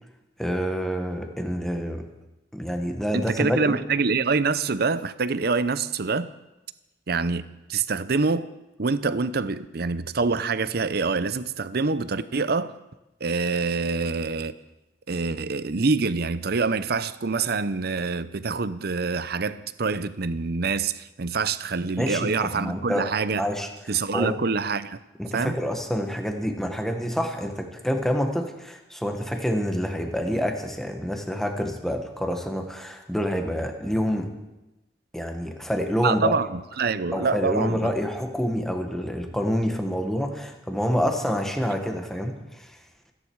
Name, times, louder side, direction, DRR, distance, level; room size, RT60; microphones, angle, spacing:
voice 1, 0.4-2.1 2.5-3.8 22.0-23.1 23.3-23.7 24.1-24.3 25.2-34.3 35.1-36.3 37.1-42.7, equal, ahead, 1.6 m, -27 dB
voice 2, 3.1-6.3 7.1-7.4 7.7-8.5 8.8-12.7 13.2-14.5 15.1-23.5 23.9-25.0 25.3-25.5 36.0-37.9, right 4 dB, 60° right, 0.7 m, -25 dB
27.5 x 10.5 x 4.7 m
head